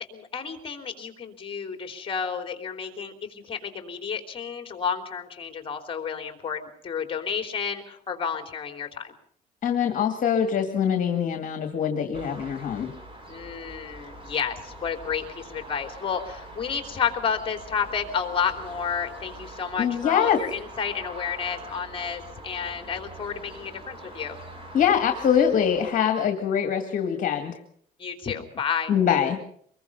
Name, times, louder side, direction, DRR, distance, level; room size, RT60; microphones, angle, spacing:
voice 1, 0.1-9.1 13.3-24.4 28.0-28.9, left 6 dB, 30° left, 6 dB, 3.5 m, -31 dB
voice 2, 9.6-12.9 19.8-20.4 24.7-27.5 28.9-29.4, left 8 dB, 50° left, 5 dB, 2.2 m, -23 dB
sound 1, 12.1-25.9, right 1 dB, 30° right, 6.6 m, -43 dB
24.5 x 21.5 x 5.6 m, 0.64 s
cardioid pair, 110°, 17 cm